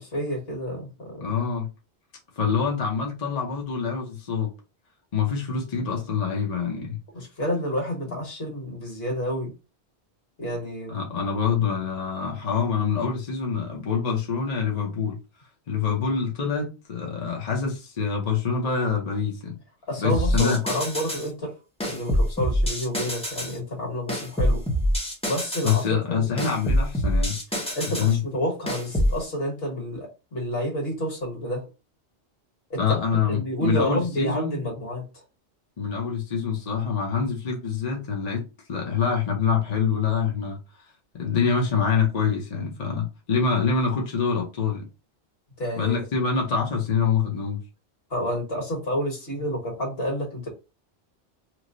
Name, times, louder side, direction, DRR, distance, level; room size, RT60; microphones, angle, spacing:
voice 1, 0.0-1.3 7.1-9.5 10.4-10.9 19.9-21.5 21.8-24.6 25.2-25.8 26.1-26.3 27.7-31.6 32.7-33.0 33.3-35.1 45.6-46.0 48.1-50.5, equal, 60° left, 1.6 m, -29 dB
voice 2, 1.2-1.7 2.4-4.5 5.1-7.0 10.9-15.2 15.7-19.6 20.0-20.6 25.6-27.4 28.0-28.2 32.8-34.6 35.8-40.6 41.1-44.9 45.8-47.6, left 6 dB, 40° left, 0.7 m, -25 dB
sound 1, 20.1-21.3 21.8-23.6 24.1-25.9 26.4-28.1 28.7-29.2, equal, 5° left, 0.5 m, -25 dB
3.0 x 2.0 x 3.8 m
omnidirectional pair, 1.2 m